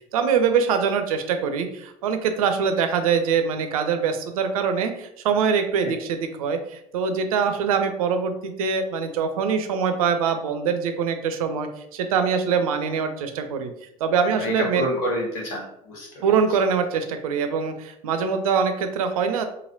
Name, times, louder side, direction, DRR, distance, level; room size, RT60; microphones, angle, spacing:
voice 1, 0.1-13.7 14.0-14.9 16.2-19.4, right 6 dB, 65° right, 7 dB, 0.4 m, -23 dB
voice 2, 14.3-16.3, left 1 dB, 60° left, -1 dB, 1.1 m, -28 dB
3.1 x 2.6 x 2.5 m, 0.78 s
figure-of-eight pair, 60°, 20 cm